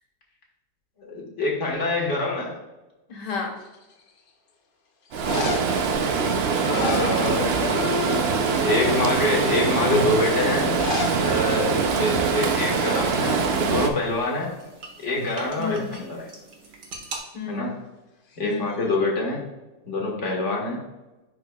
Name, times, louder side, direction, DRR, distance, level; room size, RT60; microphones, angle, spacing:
voice 1, 1.0-2.5 6.6-7.5 8.6-10.7 11.2-14.5 15.0-16.2 17.5-17.8 18.4-19.4 19.9-20.8, left 2 dB, 45° left, -1 dB, 1.9 m, -25 dB
voice 2, 3.1-3.6 6.7-8.6 15.6-16.0 17.3-17.7 18.4-18.8, left 5 dB, 85° left, 2 dB, 1.9 m, -31 dB
sound 1, 3.6-4.1 5.1-5.8 6.5-7.7 8.0-8.4 9.0-9.1 10.6-11.2 11.5-11.6 11.8-11.9 12.7-12.9 13.2-14.4 18.3-18.9, left 5 dB, 70° left, 0.5 m, -33 dB
Stream, 5.1-13.9, right 5 dB, 60° right, 0.6 m, -23 dB
sound 2, 10.4-17.2, right 3 dB, 85° right, 2.0 m, -45 dB
10.5 x 4.6 x 2.3 m, 1.1 s
omnidirectional pair, 1.8 m